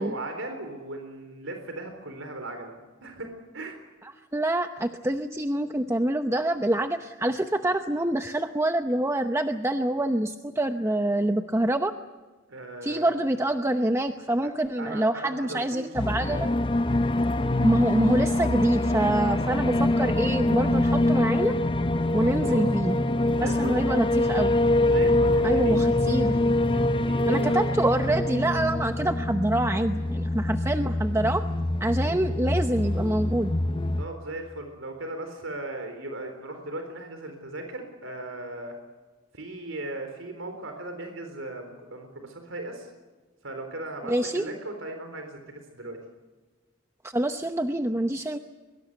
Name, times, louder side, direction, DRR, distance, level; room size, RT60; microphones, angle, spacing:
voice 1, 0.0-2.7 3.0-3.8 12.5-13.2 14.4-14.5 14.8-15.9 22.2-22.6 23.4-23.8 24.8-25.8 26.6-27.7 27.9-28.2 34.0-38.8 39.3-42.9 43.4-46.0, right 2 dB, 80° right, 5 dB, 4.0 m, -37 dB
voice 2, 4.3-11.9 12.8-16.5 17.6-21.5 22.1-23.0 23.4-24.6 25.4-26.4 27.3-31.4 31.8-33.5 44.1-44.4 47.0-48.4, right 1 dB, 15° right, 7 dB, 0.8 m, -26 dB
sound 1, 15.9-34.0, left 1 dB, 25° left, 0.7 m, -25 dB
sound 2, 22.2-28.9, equal, 10° left, 2.2 m, -33 dB
23.0 x 23.0 x 8.0 m, 1.3 s
head